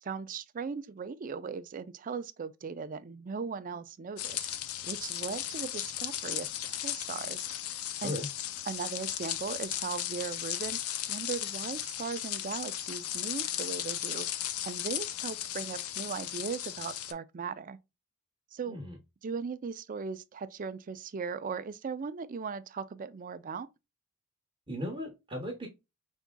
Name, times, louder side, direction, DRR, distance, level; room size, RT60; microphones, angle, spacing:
voice 1, 0.0-4.5 4.8-7.5 8.0-8.1 8.7-14.3 14.6-17.8 18.5-18.8 19.2-23.7, right 5 dB, 40° right, 0.4 m, -38 dB
sound 1, 4.2-17.1, left 11 dB, 85° left, 0.5 m, -36 dB
voice 2, 18.7-19.0 24.7-25.7, left 1 dB, 20° right, 1.1 m, -36 dB
5.2 x 3.5 x 2.2 m
head